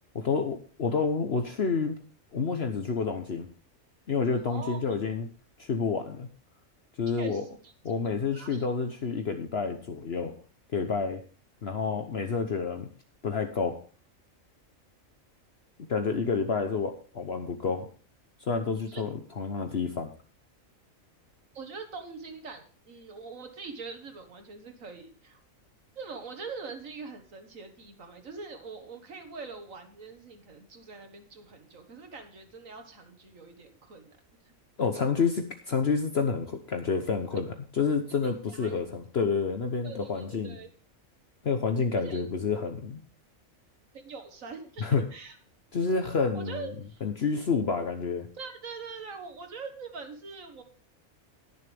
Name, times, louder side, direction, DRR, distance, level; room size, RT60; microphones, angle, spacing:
voice 1, 0.1-2.0 2.3-3.5 4.1-5.3 5.6-6.3 7.0-7.4 7.8-10.3 10.7-11.2 11.6-12.9 13.2-13.8 15.9-17.9 18.5-20.1 34.8-37.5 37.7-40.6 41.4-43.0 44.8-45.0 45.7-46.7 47.0-48.3, left 5 dB, 50° left, 6 dB, 1.2 m, -29 dB
voice 2, 4.4-4.8 7.1-7.7 8.3-8.7 18.9-19.0 21.5-25.4 26.0-34.2 34.5-34.6 38.1-38.8 39.8-40.7 42.0-42.2 43.9-45.4 46.3-47.0 48.3-50.6, right 4 dB, 75° right, 6 dB, 1.9 m, -43 dB
20.0 x 6.8 x 3.4 m, 0.38 s
omnidirectional pair, 1.4 m